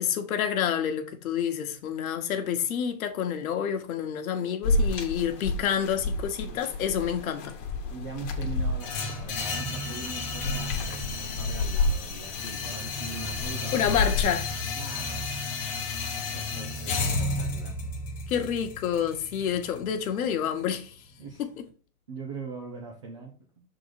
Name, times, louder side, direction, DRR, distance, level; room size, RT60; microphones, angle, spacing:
voice 1, 0.0-7.6 13.7-14.5 18.3-20.9, left 8 dB, 60° left, 1.3 m, -28 dB
sound 1, 4.6-14.2, left 3 dB, 35° left, 1.2 m, -31 dB
voice 2, 7.9-14.0 14.7-15.2 16.3-17.8 21.2-21.5 22.1-23.4, right 4 dB, 20° right, 0.4 m, -41 dB
sound 2, 8.8-20.8, left 3 dB, 15° left, 0.8 m, -33 dB
6.5 x 3.9 x 4.7 m
supercardioid pair, 165°, 47 cm